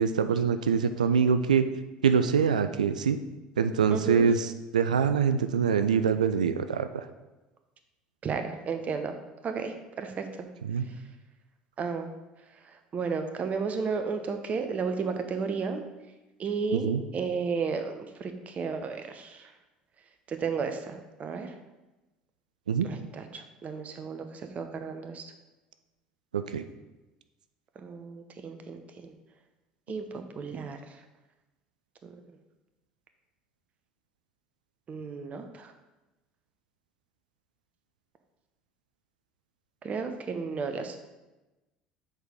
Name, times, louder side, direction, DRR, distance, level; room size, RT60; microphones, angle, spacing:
voice 1, 0.0-1.7 2.0-3.2 3.6-7.0 10.6-10.9 16.7-17.0 22.7-22.9 26.3-26.6, right 6 dB, 85° right, 10 dB, 0.3 m, -24 dB
voice 2, 3.9-4.3 8.2-9.1 9.4-10.5 11.8-12.1 12.9-15.8 16.4-19.5 20.3-21.5 22.8-25.2 27.8-29.1 29.9-30.8 32.0-32.1 34.9-35.7 39.8-41.0, right 5 dB, 35° right, 7 dB, 0.9 m, -33 dB
6.4 x 4.7 x 5.2 m, 1.1 s
hypercardioid pair, 70°, 4 cm